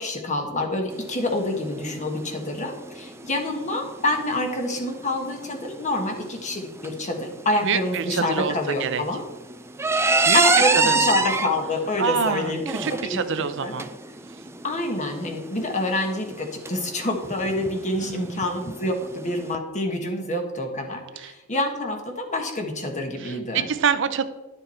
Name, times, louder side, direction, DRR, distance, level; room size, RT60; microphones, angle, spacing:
voice 1, 0.0-9.2 10.3-12.6 12.9-13.2 13.6-13.7 14.6-23.7, left 1 dB, 35° left, 3 dB, 1.4 m, -27 dB
sound 1, 0.9-19.6, right 3 dB, 10° right, 0.4 m, -28 dB
voice 2, 7.6-8.5 8.8-9.0 10.2-10.4 10.7-11.1 12.0-13.9 18.0-18.2 21.2-21.3 23.2-24.2, right 6 dB, 60° right, 11 dB, 0.6 m, -26 dB
11.0 x 6.9 x 4.4 m, 1.2 s
head